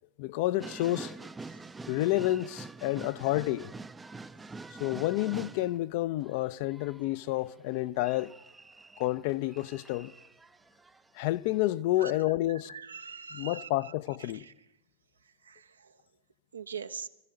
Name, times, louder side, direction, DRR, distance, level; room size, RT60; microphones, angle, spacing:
voice 1, 0.2-1.2 1.9-3.7 4.8-8.3 9.0-10.1 11.2-12.8 13.3-14.4, left 16 dB, 45° left, 0.5 m, -29 dB
sound 1, 0.6-5.8 6.2-11.3 11.5-11.6, right 3 dB, 10° right, 0.5 m, -46 dB
voice 2, 12.7-13.7 14.3-14.5 15.5-15.9 16.5-17.1, right 6 dB, 70° right, 0.7 m, -42 dB
23.0 x 15.0 x 4.0 m
figure-of-eight pair, 90°, 0 cm